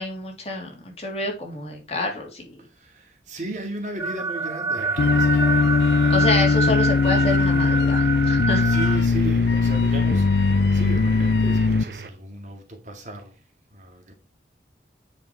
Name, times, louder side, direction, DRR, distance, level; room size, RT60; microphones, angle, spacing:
voice 1, 0.0-2.5 6.1-8.7, left 2 dB, 35° left, 2.9 m, -28 dB
voice 2, 2.6-5.8 8.6-13.4 13.7-14.1, right 2 dB, 45° right, 2.1 m, -36 dB
sound 1, 4.0-9.0, right 4 dB, 15° right, 0.5 m, -27 dB
sound 2, 4.8-12.1, right 4 dB, 60° right, 0.7 m, -39 dB
sound 3, 5.0-11.8, left 4 dB, 75° left, 0.4 m, -20 dB
9.5 x 5.3 x 4.6 m
head